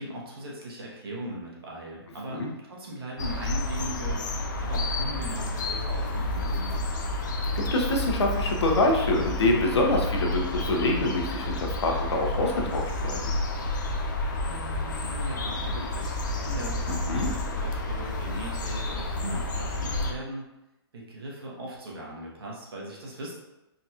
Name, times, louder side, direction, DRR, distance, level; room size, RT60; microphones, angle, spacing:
voice 1, 0.0-7.0 14.5-20.5 20.9-23.3, right 1 dB, 65° right, -4 dB, 1.2 m, -39 dB
sound 1, 3.2-20.1, left 2 dB, 45° left, 0.5 m, -30 dB
voice 2, 7.5-13.3 17.1-17.3, left 2 dB, 85° left, 1 dB, 0.8 m, -26 dB
3.8 x 2.8 x 2.4 m, 0.96 s
hypercardioid pair, 175°, 14 cm